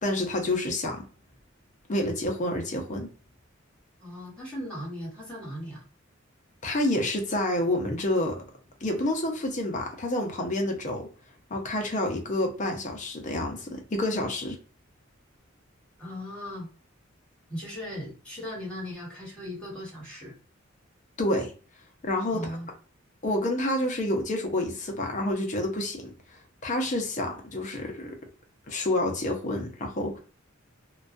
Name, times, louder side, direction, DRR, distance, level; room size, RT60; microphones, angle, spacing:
voice 1, 0.0-1.1 1.9-3.1 6.6-8.4 8.8-11.1 11.5-14.6 21.2-21.5 22.0-22.5 23.2-26.1 26.6-28.2 28.7-30.2, left 1 dB, 40° left, 3 dB, 0.6 m, -28 dB
voice 2, 4.0-5.8 16.0-16.7 17.5-20.3 22.3-22.7, left 1 dB, 5° left, -4 dB, 1.2 m, -38 dB
2.3 x 2.2 x 2.5 m, 0.37 s
head